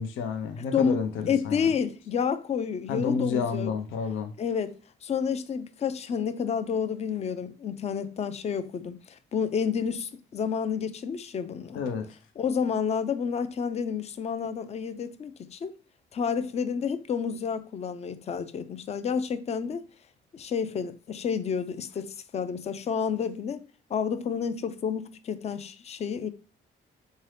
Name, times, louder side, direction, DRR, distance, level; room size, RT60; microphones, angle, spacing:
voice 1, 0.0-1.7 2.9-4.3 11.7-12.1, left 5 dB, 85° left, 0.5 m, -30 dB
voice 2, 1.3-3.7 4.4-11.8 12.4-15.7 16.1-19.8 20.3-23.6 23.9-26.3, left 6 dB, 35° left, 0.4 m, -30 dB
3.8 x 2.7 x 3.3 m
cardioid pair, 90°, 20 cm